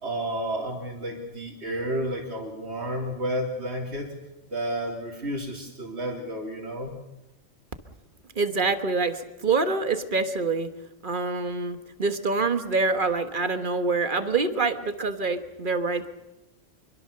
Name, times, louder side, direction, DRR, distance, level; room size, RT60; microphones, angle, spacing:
voice 1, 0.0-4.1 4.5-6.9, right 1 dB, 60° right, -3 dB, 3.5 m, -31 dB
voice 2, 8.3-10.7 11.0-16.1, right 3 dB, 45° right, 9 dB, 1.6 m, -26 dB
26.0 x 22.5 x 6.8 m, 0.96 s
omnidirectional pair, 1.3 m